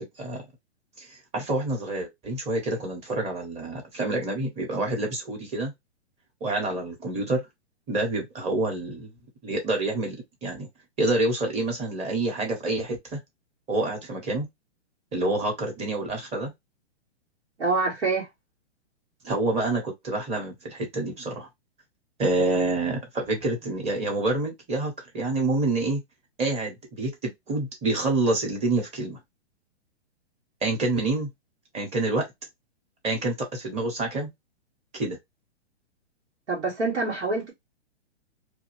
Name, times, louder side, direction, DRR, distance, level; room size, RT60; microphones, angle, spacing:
voice 1, 1.0-5.7 6.4-7.4 7.9-9.1 9.4-10.7 11.0-13.2 13.7-14.5 15.1-16.5 19.2-21.5 22.2-26.0 26.4-29.2 30.6-31.3 31.7-32.3 33.0-34.3 34.9-35.2, right 2 dB, 20° right, 1.0 m, -27 dB
voice 2, 17.6-18.3 36.5-37.5, right 3 dB, 90° right, 1.5 m, -26 dB
2.5 x 2.2 x 3.0 m
hypercardioid pair, 135°, 34 cm